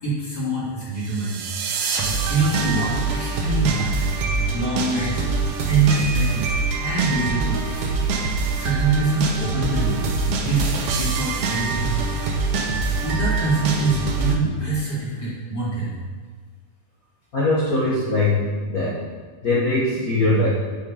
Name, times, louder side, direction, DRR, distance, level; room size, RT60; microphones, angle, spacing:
voice 1, 0.0-1.4 2.0-4.0 4.5-5.3 5.6-6.5 6.8-7.9 8.5-12.1 13.0-15.9, right 3 dB, 30° left, -8 dB, 2.8 m, -24 dB
sound 1, 1.0-14.3, right 4 dB, 80° right, 1.3 m, -24 dB
voice 2, 17.3-19.0 19.4-20.5, left 2 dB, 60° left, -7 dB, 0.9 m, -21 dB
9.6 x 5.9 x 5.0 m, 1.5 s
omnidirectional pair, 3.9 m